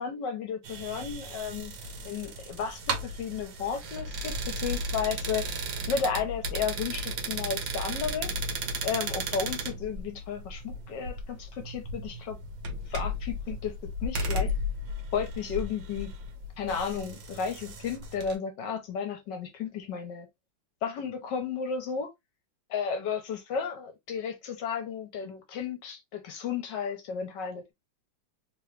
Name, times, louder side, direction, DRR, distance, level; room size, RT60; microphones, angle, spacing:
voice 1, 0.0-1.7 2.0-5.5 5.9-8.3 8.8-12.4 12.9-14.5 15.1-16.1 16.6-20.3 20.8-22.1 22.7-27.7, left 6 dB, 70° left, 1.4 m, -33 dB
sound 1, 0.6-18.4, right 1 dB, 75° right, 1.6 m, -35 dB
3.6 x 2.9 x 3.2 m
omnidirectional pair, 2.1 m